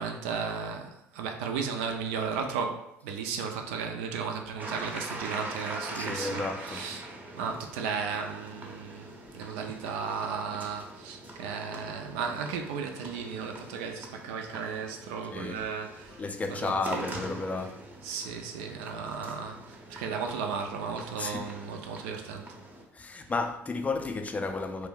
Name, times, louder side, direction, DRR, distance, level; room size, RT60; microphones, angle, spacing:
voice 1, 0.0-7.1 7.3-17.2 18.0-22.6, right 6 dB, 70° right, 0.4 m, -35 dB
sound 1, 4.6-22.8, right 1 dB, 20° right, 0.7 m, -43 dB
voice 2, 5.9-6.8 15.3-15.6 16.2-17.8 21.2-21.5 22.9-24.9, left 3 dB, 20° left, 0.4 m, -32 dB
sound 2, 10.7-10.9 11.4-11.6 12.2-12.4 13.0-13.2 13.7-14.0 14.5-15.6 16.1-16.3, equal, 80° left, 0.8 m, -55 dB
2.5 x 2.1 x 3.7 m
figure-of-eight pair, 60°, 7 cm